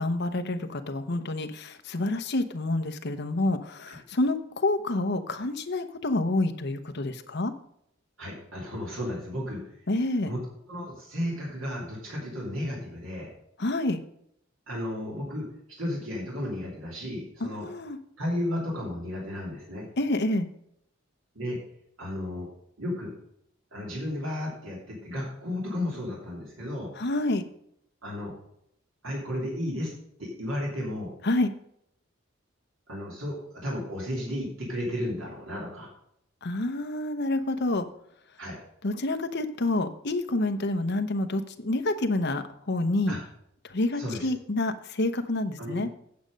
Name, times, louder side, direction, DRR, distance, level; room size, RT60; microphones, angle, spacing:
voice 1, 0.0-7.5 9.9-10.3 13.6-14.0 17.4-18.0 20.0-20.5 27.0-27.4 31.2-31.5 36.4-37.8 38.8-43.1 43.7-45.9, left 2 dB, 60° left, 7 dB, 0.9 m, -28 dB
voice 2, 8.2-9.6 10.2-10.4 10.7-13.3 14.7-17.7 18.2-19.9 21.3-21.6 22.0-22.5 22.8-23.1 23.7-26.9 28.0-28.3 29.0-29.9 30.2-31.1 32.9-35.9 38.4-38.6 43.1-43.2 44.0-44.3 45.6-45.8, left 1 dB, 80° right, -3 dB, 3.0 m, -33 dB
8.7 x 7.5 x 5.2 m, 0.72 s
head